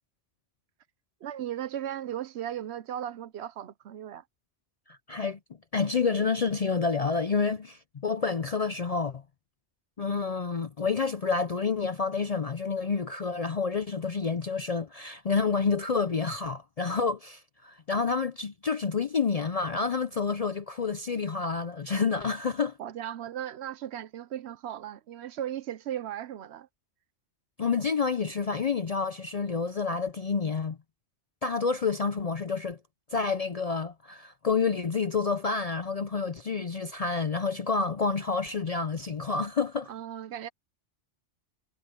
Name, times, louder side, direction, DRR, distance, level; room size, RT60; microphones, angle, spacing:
voice 1, 1.2-4.2 22.8-26.7 39.9-40.5, right 11 dB, 70° right, 0.8 m, -36 dB
voice 2, 4.9-5.4 5.7-9.2 10.0-22.8 27.6-30.8 31.4-32.8 33.1-39.9, left 5 dB, 45° left, 0.5 m, -29 dB
omnidirectional pair, 1.2 m